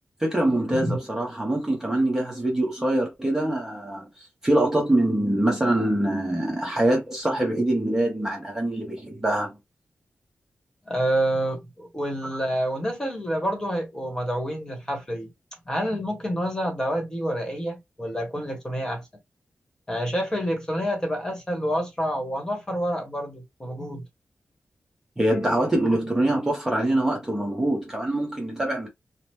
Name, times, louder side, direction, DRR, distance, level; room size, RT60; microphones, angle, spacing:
voice 1, 0.2-9.5 25.2-28.9, right 1 dB, 15° right, 0.8 m, -24 dB
voice 2, 10.8-15.3 15.7-19.0 19.9-24.0, equal, 15° left, 1.1 m, -28 dB
2.9 x 2.0 x 3.2 m
wide cardioid pair, 145°, 4 cm